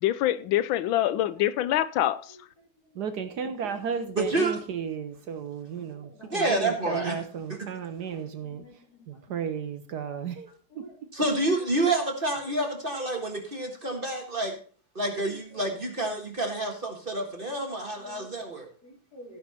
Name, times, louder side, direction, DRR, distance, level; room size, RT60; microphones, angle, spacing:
voice 1, 0.0-2.4, left 13 dB, 85° left, 1.4 m, -25 dB
voice 2, 2.9-8.6 9.1-10.5 10.7-10.9, right 7 dB, 65° right, 1.3 m, -34 dB
voice 3, 4.1-4.6 6.3-7.2 11.1-14.5 14.9-18.7, right 2 dB, 30° right, 1.7 m, -28 dB
voice 4, 6.2-6.5 8.0-9.0 10.7-11.0 15.3-16.1 18.0-18.3 18.8-19.4, equal, 55° left, 3.5 m, -50 dB
15.5 x 5.9 x 4.2 m
omnidirectional pair, 2.1 m